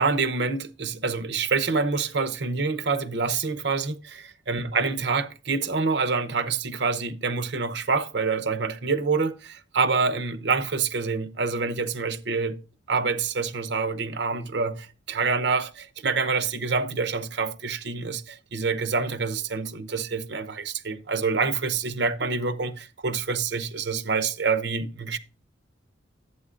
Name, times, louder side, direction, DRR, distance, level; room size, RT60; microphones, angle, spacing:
voice 1, 0.0-12.6 12.9-25.2, right 4 dB, 60° right, 0.8 m, -27 dB
11.0 x 8.6 x 2.5 m
head